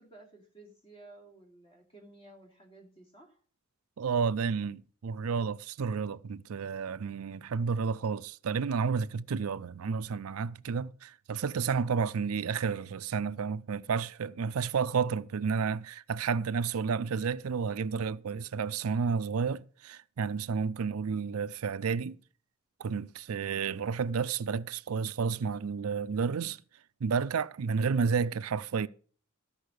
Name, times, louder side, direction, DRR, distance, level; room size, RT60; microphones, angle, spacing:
voice 1, 0.0-3.4 28.1-28.4, right 2 dB, 25° left, 2.9 m, -54 dB
voice 2, 4.0-22.2 22.8-26.6 27.0-28.9, right 5 dB, 75° right, 0.5 m, -31 dB
13.5 x 5.6 x 6.4 m
head